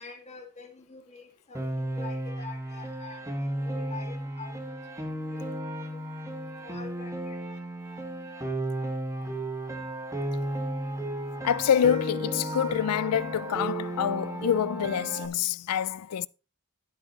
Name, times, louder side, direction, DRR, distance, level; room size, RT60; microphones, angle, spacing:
voice 1, 0.0-5.5 5.9-6.0 6.6-7.4, left 5 dB, 30° left, 1.9 m, -46 dB
Piano, 1.5-15.3, right 1 dB, 15° right, 1.4 m, -34 dB
voice 2, 11.4-16.3, left 8 dB, 90° left, 0.4 m, -26 dB
11.0 x 9.7 x 2.9 m
head